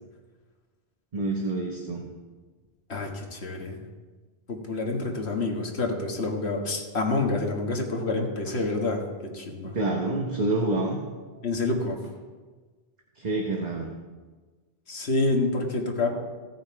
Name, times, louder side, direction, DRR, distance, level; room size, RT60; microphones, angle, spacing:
voice 1, 1.1-2.1 9.6-11.0 13.2-13.9, right 2 dB, 45° right, 1 dB, 1.2 m, -27 dB
voice 2, 2.9-3.8 4.5-9.0 9.3-9.7 11.4-12.0 14.9-16.1, left 2 dB, 80° left, 1 dB, 1.8 m, -27 dB
16.5 x 6.4 x 4.6 m, 1.4 s
omnidirectional pair, 1.1 m